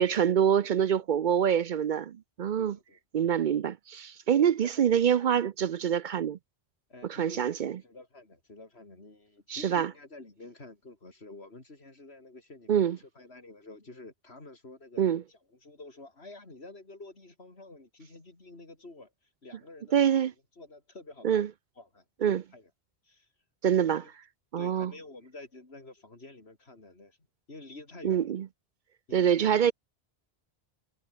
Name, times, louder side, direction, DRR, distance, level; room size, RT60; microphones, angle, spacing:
voice 1, 0.0-2.8 3.1-6.4 7.0-7.8 9.5-9.9 12.7-13.0 15.0-15.2 19.9-20.3 21.2-21.5 22.2-22.4 23.6-24.1 24.5-24.9 28.0-28.5 29.1-29.7, right 8 dB, 55° right, 0.6 m, -25 dB
voice 2, 0.6-1.0 2.6-3.0 4.6-5.4 6.9-15.0 15.3-19.1 19.4-20.0 20.6-21.4 21.8-22.7 23.0-23.3 23.9-24.1 24.6-27.2 27.5-28.3 29.1-29.5, left 2 dB, 90° left, 4.1 m, -49 dB
omnidirectional pair, 1.0 m